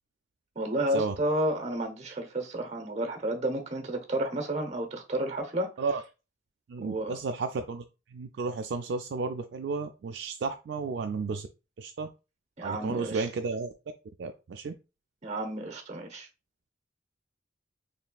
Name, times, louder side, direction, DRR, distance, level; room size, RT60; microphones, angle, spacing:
voice 1, 0.6-5.7 6.8-7.1 12.6-13.2 15.2-16.3, right 1 dB, 35° right, 0.8 m, -31 dB
voice 2, 6.7-7.8 8.1-11.5 11.8-12.1 12.6-13.7 14.2-14.7, right 4 dB, 60° right, 0.3 m, -32 dB
4.2 x 3.2 x 2.3 m
head